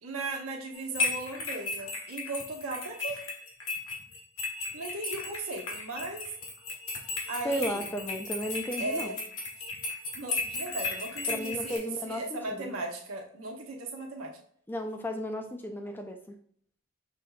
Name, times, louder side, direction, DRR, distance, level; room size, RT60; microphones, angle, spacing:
voice 1, 0.0-3.2 4.7-6.3 7.3-7.9 8.8-9.2 10.1-14.4, right 2 dB, 90° right, 2 dB, 1.0 m, -37 dB
sound 1, 0.7-11.8, left 3 dB, 80° left, 1.3 m, -35 dB
voice 2, 7.4-9.2 11.3-12.8 14.7-16.4, equal, 10° left, 4 dB, 0.4 m, -34 dB
6.1 x 3.4 x 2.3 m, 0.62 s
head